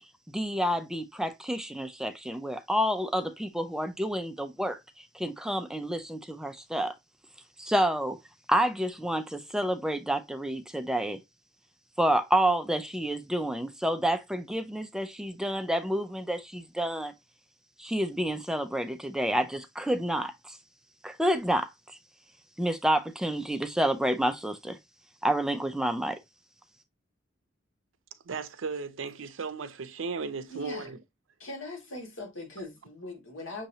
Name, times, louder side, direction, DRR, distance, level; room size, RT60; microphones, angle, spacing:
voice 1, 0.3-4.8 5.1-6.9 7.6-8.2 8.5-11.2 12.0-17.1 17.8-20.6 21.0-21.7 22.6-24.8 25.2-26.2, right 1 dB, 5° right, 0.4 m, -29 dB
voice 2, 28.3-31.0, right 4 dB, 80° right, 0.6 m, -36 dB
voice 3, 30.5-30.9 31.4-33.7, left 2 dB, 85° left, 2.0 m, -40 dB
6.4 x 2.9 x 2.7 m
head